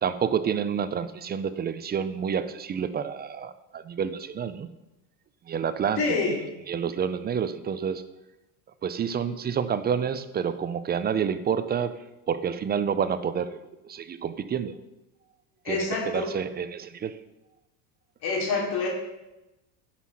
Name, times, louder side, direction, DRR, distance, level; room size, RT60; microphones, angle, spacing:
voice 1, 0.0-4.7 5.5-6.2 6.7-8.0 8.8-12.0 12.3-13.6 13.8-14.7 15.7-17.2, right 7 dB, 20° right, 13 dB, 0.4 m, -28 dB
voice 2, 6.0-6.4 15.6-16.3 18.2-18.9, left 3 dB, 50° left, 0 dB, 2.9 m, -26 dB
11.0 x 5.8 x 5.8 m, 0.98 s
supercardioid pair, 110°, 47 cm